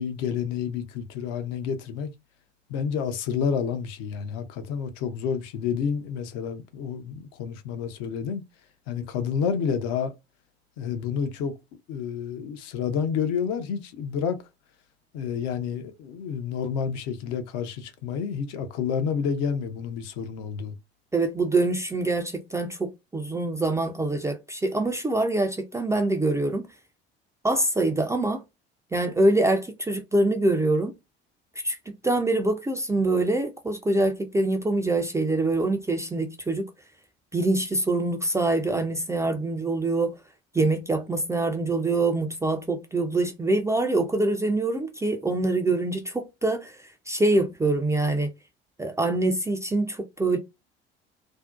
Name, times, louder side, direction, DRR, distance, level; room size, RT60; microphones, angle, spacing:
voice 1, 0.0-2.1 2.7-8.4 8.9-10.1 10.8-11.5 11.9-14.4 15.1-20.7, left 7 dB, 55° left, 0.6 m, -29 dB
voice 2, 21.1-26.6 27.4-28.4 28.9-30.9 31.6-36.7 37.3-40.2 40.5-46.8 47.1-48.3 48.8-50.4, right 2 dB, 10° right, 0.4 m, -25 dB
2.6 x 2.0 x 2.3 m
figure-of-eight pair, 60°, 31 cm